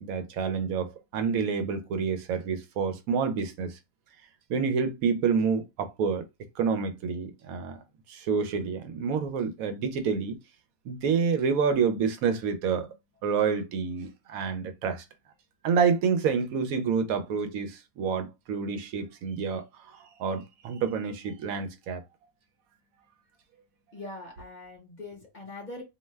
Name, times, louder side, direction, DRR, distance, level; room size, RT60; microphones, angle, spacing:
voice 1, 0.0-3.8 4.5-6.2 6.6-7.8 8.1-10.4 10.9-12.9 13.2-15.0 15.6-22.0, right 6 dB, 80° right, 1.0 m, -28 dB
voice 2, 23.9-25.8, left 2 dB, 40° left, 0.8 m, -42 dB
2.6 x 2.2 x 3.2 m
omnidirectional pair, 1.5 m